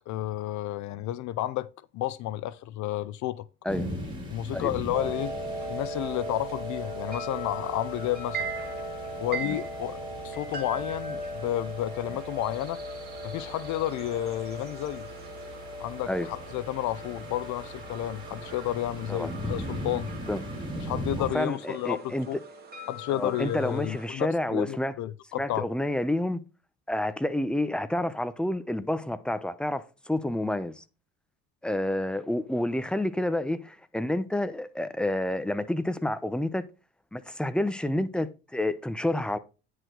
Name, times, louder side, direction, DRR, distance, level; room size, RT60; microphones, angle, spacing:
voice 1, 0.1-3.5 4.3-5.4 5.7-8.5 9.2-12.8 13.2-15.0 15.8-20.1 20.8-22.4 22.9-25.7, left 14 dB, 65° left, 0.5 m, -31 dB
sound 1, 3.7-21.3, equal, 15° right, 3.7 m, -40 dB
sound 2, 4.9-24.1, right 1 dB, 30° right, 2.4 m, -38 dB
voice 2, 21.2-22.4 23.1-25.0 25.3-26.4 26.9-30.8 31.6-36.6 37.1-39.4, left 1 dB, 5° left, 0.7 m, -29 dB
9.7 x 4.7 x 3.8 m
cardioid pair, 95°, 31 cm